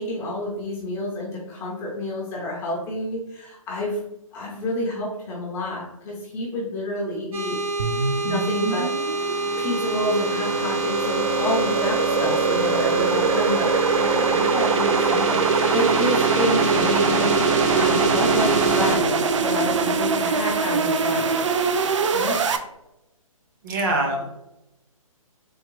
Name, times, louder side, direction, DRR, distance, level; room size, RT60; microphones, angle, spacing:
voice 1, 0.0-4.0 4.3-7.6 7.9-8.9 9.6-13.7 14.0-21.4 22.1-22.4, left 1 dB, 15° left, -4 dB, 0.6 m, -29 dB
sound 1, 7.3-19.0, right 3 dB, 75° right, 1.4 m, -25 dB
sound 2, 7.8-22.6, right 5 dB, 60° right, 0.4 m, -23 dB
voice 2, 23.6-24.2, right 2 dB, 35° right, 1 dB, 0.8 m, -23 dB
3.7 x 3.0 x 3.0 m, 0.88 s
figure-of-eight pair, 145°, 18 cm